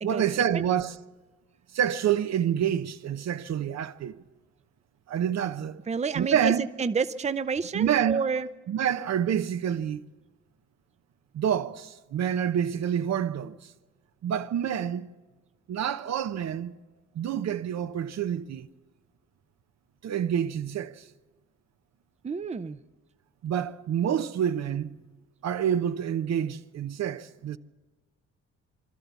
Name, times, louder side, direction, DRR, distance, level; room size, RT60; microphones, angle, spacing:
voice 1, 0.0-1.0 1.7-4.2 5.1-5.8 6.1-6.7 7.7-8.2 8.7-10.0 11.3-13.6 14.2-15.1 15.7-16.7 17.1-18.7 20.0-21.0 23.4-25.0 25.4-27.6, right 9 dB, 60° right, 0.9 m, -27 dB
voice 2, 5.9-8.5 22.2-22.8, right 5 dB, 20° right, 0.7 m, -29 dB
25.5 x 12.5 x 8.2 m
cardioid pair, 90°, 30 cm